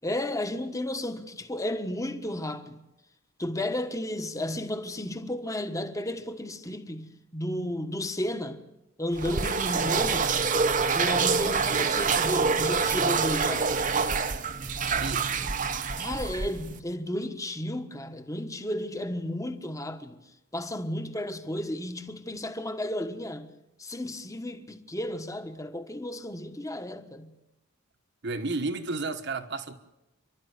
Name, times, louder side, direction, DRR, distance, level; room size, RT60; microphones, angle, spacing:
voice 1, 0.0-2.8 3.4-8.6 9.0-10.5 10.9-13.7 16.0-20.2 20.5-23.5 23.8-27.3, left 1 dB, 15° left, 1.3 m, -33 dB
sound 1, 9.2-16.8, right 5 dB, 35° right, 0.9 m, -26 dB
voice 2, 14.9-15.3 28.2-29.7, right 3 dB, 55° right, 1.5 m, -32 dB
28.5 x 12.0 x 9.6 m
head